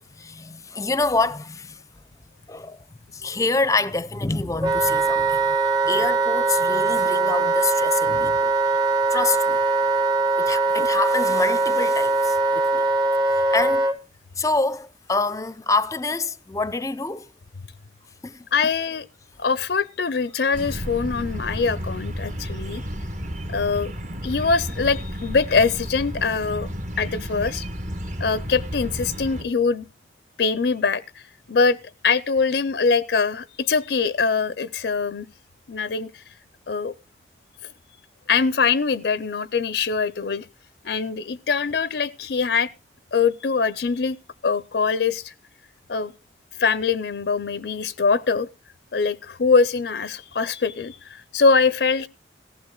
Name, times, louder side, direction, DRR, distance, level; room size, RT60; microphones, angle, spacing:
voice 1, 0.1-1.8 2.5-2.8 3.1-5.6 5.8-8.5 9.1-9.6 10.4-12.8 13.3-13.9 14.4-17.3 18.2-18.5, left 3 dB, 20° left, 0.5 m, -26 dB
Wind instrument woodwind instrument, 4.6-14.0, right 3 dB, 25° right, 0.8 m, -21 dB
voice 2, 18.5-19.1 19.4-22.8 23.5-23.9 24.2-26.7 27.0-27.6 28.2-29.9 30.4-31.2 31.5-31.8 32.0-35.3 35.7-36.2 36.7-36.9 38.3-40.5 40.8-42.7 43.1-44.2 44.4-45.3 45.9-46.1 46.6-48.5 48.9-52.1, left 5 dB, 70° left, 0.5 m, -23 dB
sound 1, 20.5-29.4, equal, 45° right, 1.3 m, -32 dB
18.0 x 15.0 x 2.3 m
head